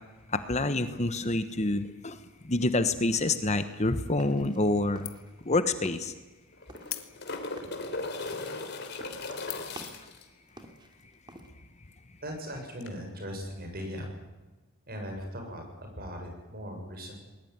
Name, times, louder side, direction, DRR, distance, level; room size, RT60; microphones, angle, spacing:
voice 1, 0.3-2.2 2.4-5.1 5.4-6.1, left 2 dB, 30° left, 10 dB, 1.2 m, -27 dB
sound 1, 3.5-4.6 5.0-5.5 5.7-6.2 6.7-10.2 10.5-11.5, right 1 dB, 20° right, 2.8 m, -49 dB
sound 2, 4.4-4.8 5.1-5.4 5.9-6.0 6.8-7.5 8.2-8.3 8.8-9.0 9.5-9.9, left 15 dB, 80° left, 1.8 m, -41 dB
sound 3, 5.0-5.1 5.4-5.5 6.5-10.2 12.8-12.9, left 3 dB, 50° left, 3.5 m, -37 dB
voice 2, 12.2-14.1 14.9-17.1, equal, 45° right, 3 dB, 7.0 m, -39 dB
20.5 x 20.5 x 9.6 m, 1.2 s
head